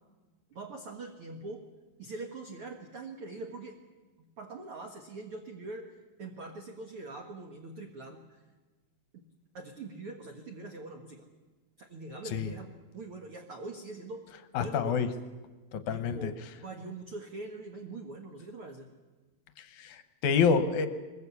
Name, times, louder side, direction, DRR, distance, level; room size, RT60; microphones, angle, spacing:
voice 1, 0.5-1.7 2.0-3.8 4.4-8.4 9.5-11.3 11.8-14.3 14.5-15.1 15.9-18.9, right 3 dB, 50° right, 3 dB, 1.7 m, -43 dB
voice 2, 14.5-15.1 15.7-16.3 19.6-20.9, left 6 dB, 65° left, 10 dB, 2.0 m, -28 dB
23.0 x 21.5 x 8.3 m, 1.3 s
omnidirectional pair, 4.5 m